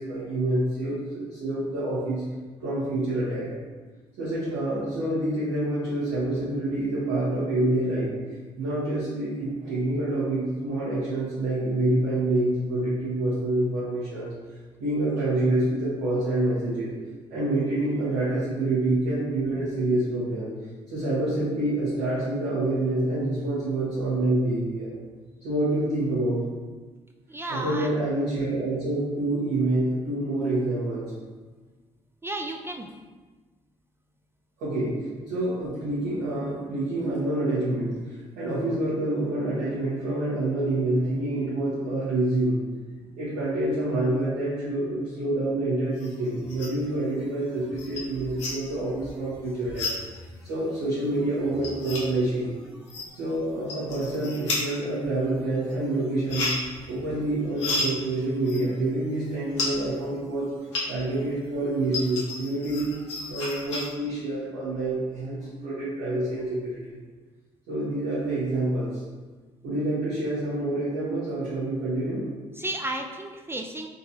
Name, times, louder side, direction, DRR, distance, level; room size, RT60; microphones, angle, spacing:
voice 1, 0.0-2.2 2.6-3.5 4.2-8.1 8.6-14.3 14.8-16.9 17.3-20.5 20.9-24.9 25.4-26.4 27.5-31.0 34.6-35.0 35.3-38.0 38.3-42.6 43.2-49.9 50.4-52.5 53.1-56.5 56.9-60.5 60.9-62.9 63.3-67.0 67.7-69.0 69.6-72.2, right 2 dB, 80° right, -14 dB, 1.2 m, -27 dB
voice 2, 27.3-27.9 32.2-32.9 72.6-73.9, right 1 dB, 15° right, 3 dB, 0.3 m, -33 dB
sound 1, 45.9-46.9 47.3-61.2 61.5-63.9, left 2 dB, 90° left, 0.7 m, -34 dB
3.7 x 2.8 x 2.8 m, 1.3 s
hypercardioid pair, 45°, 14 cm